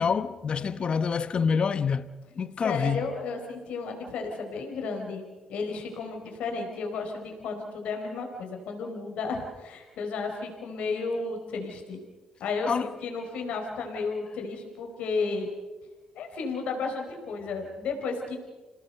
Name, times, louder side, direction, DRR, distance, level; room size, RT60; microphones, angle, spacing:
voice 1, 0.0-2.1 2.4-3.1 12.7-12.9, left 6 dB, 50° left, 1.0 m, -27 dB
voice 2, 2.6-12.0 12.4-15.5 16.1-18.4, left 4 dB, 75° left, 4.4 m, -33 dB
27.0 x 18.0 x 6.7 m
supercardioid pair, 60°, 2 cm